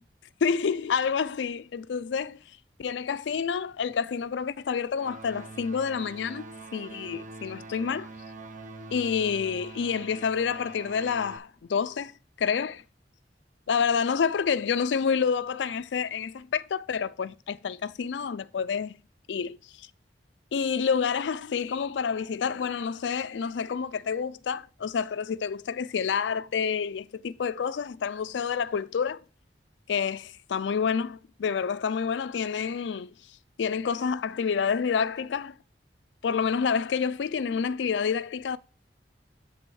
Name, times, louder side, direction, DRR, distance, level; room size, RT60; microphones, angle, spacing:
voice 1, 0.4-2.4 2.8-6.5 6.7-8.1 8.9-12.8 13.7-19.0 19.3-19.6 20.5-29.2 29.9-33.1 33.6-35.6 36.2-38.6, left 6 dB, 85° left, 0.4 m, -28 dB
sound 1, 4.9-11.4, right 3 dB, 50° right, 0.9 m, -44 dB
10.5 x 3.5 x 4.6 m
head